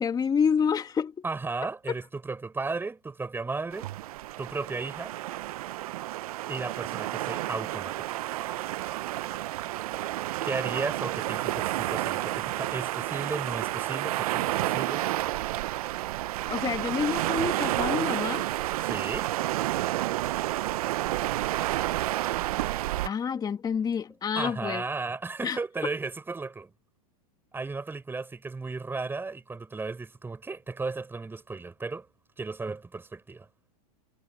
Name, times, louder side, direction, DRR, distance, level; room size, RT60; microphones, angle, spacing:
voice 1, 0.0-1.1 16.5-18.5 23.0-24.9 25.4-25.6, left 6 dB, 20° left, 2.6 m, -28 dB
voice 2, 1.2-3.9 4.4-5.1 6.5-8.1 10.4-15.0 18.8-19.3 24.3-26.7 27.5-32.1 32.4-33.5, right 3 dB, 10° right, 6.2 m, -35 dB
sound 1, 3.7-23.1, right 16 dB, 70° right, 0.7 m, -30 dB
hypercardioid pair, 120°, 19 cm